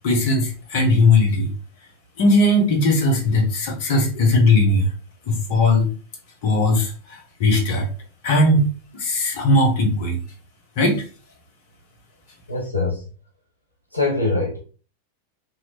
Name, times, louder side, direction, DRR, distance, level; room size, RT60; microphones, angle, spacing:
voice 1, 0.0-1.5 2.2-4.9 5.3-5.9 6.4-7.9 8.2-8.7 8.9-10.2 10.8-11.0, left 2 dB, 45° left, 1.1 m, -18 dB
voice 2, 12.5-13.0 13.9-14.6, left 3 dB, 90° left, 0.6 m, -23 dB
2.9 x 2.8 x 2.9 m
figure-of-eight pair, 90°, 0 cm